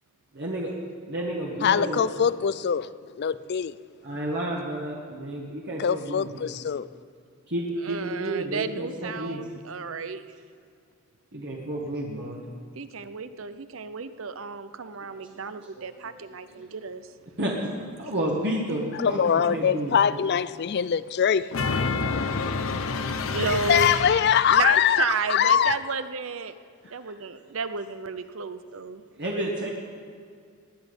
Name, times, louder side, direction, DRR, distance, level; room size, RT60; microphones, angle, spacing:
voice 1, 0.3-0.7 1.1-2.3 4.0-6.5 7.5-9.4 11.3-12.4 15.5-16.1 16.5-16.6 17.4-19.2 19.5-20.1 26.8-27.1 27.5-27.6 29.2-29.7, right 1 dB, 55° right, 1.6 m, -31 dB
voice 2, 1.6-2.8 3.2-3.8 5.8-6.9 19.0-21.5 22.2-22.3 23.5-25.8, left 8 dB, 55° left, 0.4 m, -23 dB
voice 3, 7.8-10.2 12.8-17.1 23.3-23.9 24.5-26.5 26.9-29.0, right 4 dB, 75° right, 0.7 m, -32 dB
sound 1, 21.5-24.7, left 4 dB, 80° left, 0.8 m, -28 dB
19.0 x 10.0 x 5.4 m
head